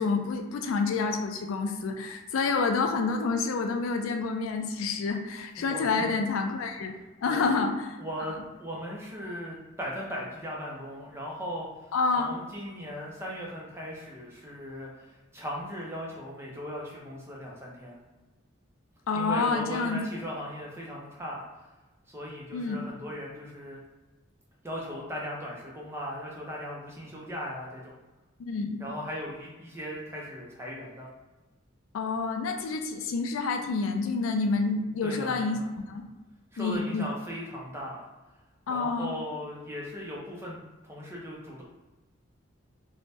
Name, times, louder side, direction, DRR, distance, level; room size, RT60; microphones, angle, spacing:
voice 1, 0.0-7.7 8.2-8.3 11.9-12.3 19.1-20.0 22.5-22.8 28.4-28.8 31.9-35.6 35.9-36.0 36.6-37.1 38.7-39.1, left 4 dB, 80° left, 5 dB, 0.4 m, -28 dB
voice 2, 7.2-7.7 8.0-18.0 19.1-21.4 22.1-23.8 24.6-27.9 28.8-31.1 35.0-35.6 36.5-38.0 38.7-41.6, equal, 10° right, -3 dB, 0.5 m, -38 dB
2.6 x 2.1 x 3.2 m, 1.1 s
head